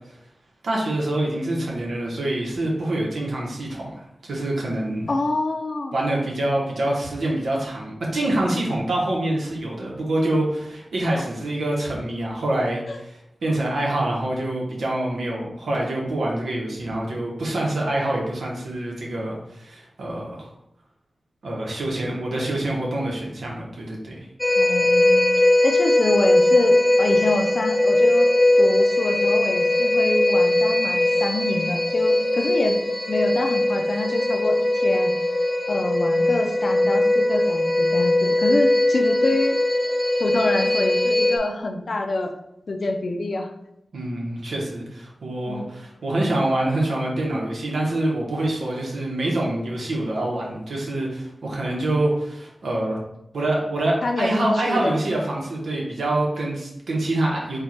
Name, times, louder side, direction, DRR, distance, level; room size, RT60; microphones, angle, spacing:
voice 1, 0.6-5.1 5.9-20.5 21.4-24.3 43.9-53.0 53.3-57.6, right 1 dB, 90° right, -2 dB, 1.1 m, -26 dB
voice 2, 5.1-5.9 12.9-13.0 24.6-25.3 25.6-28.3 28.6-32.8 33.1-35.1 35.7-39.6 40.2-42.3 42.7-43.5 45.5-45.6 54.0-55.0, left 2 dB, 65° left, 4 dB, 0.6 m, -26 dB
sound 1, 24.4-41.4, left 1 dB, 5° left, 1.0 m, -20 dB
4.5 x 2.4 x 4.3 m, 0.81 s
cardioid pair, 55°, 0 cm